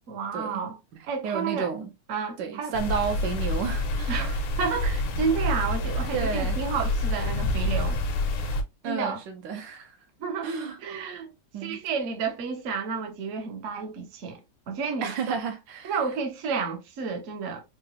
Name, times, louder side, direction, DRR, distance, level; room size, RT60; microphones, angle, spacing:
voice 1, 0.1-0.8 1.1-1.7 2.1-2.8 4.1-8.0 8.8-9.2 10.2-10.5 10.8-11.3 11.6-14.4 14.7-15.4 15.8-17.6, right 5 dB, 55° right, 0.8 m, -31 dB
voice 2, 1.2-1.9 2.4-4.2 6.1-6.6 8.4-8.5 8.8-9.9 10.4-10.8 11.5-11.8 15.0-15.9, right 6 dB, 75° right, 1.2 m, -31 dB
sound 1, 2.7-8.6, left 1 dB, 75° left, 1.4 m, -27 dB
3.7 x 2.3 x 2.7 m
omnidirectional pair, 2.1 m